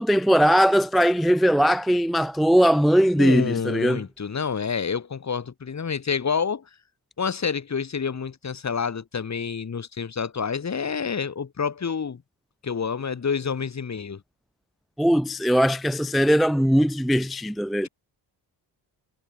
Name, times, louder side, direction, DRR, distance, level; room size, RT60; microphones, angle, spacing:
voice 1, 0.0-4.0 15.0-17.9, equal, ahead, 0.5 m, -20 dB
voice 2, 3.2-6.6 7.2-12.2 12.6-14.2, left 6 dB, 40° left, 2.9 m, -28 dB
wide cardioid pair, 125°, 42 cm